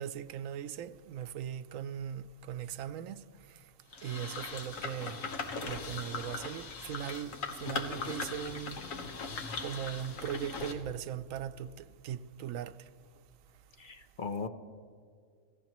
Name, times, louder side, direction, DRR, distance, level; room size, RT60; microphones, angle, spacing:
voice 1, 0.0-3.2 4.0-5.2 5.6-8.8 9.6-12.8, right 9 dB, 90° right, 1.0 m, -39 dB
sound 1, 3.9-10.7, left 4 dB, 85° left, 1.6 m, -39 dB
voice 2, 13.8-14.5, left 4 dB, 45° left, 0.8 m, -38 dB
26.5 x 15.0 x 3.0 m
omnidirectional pair, 1.3 m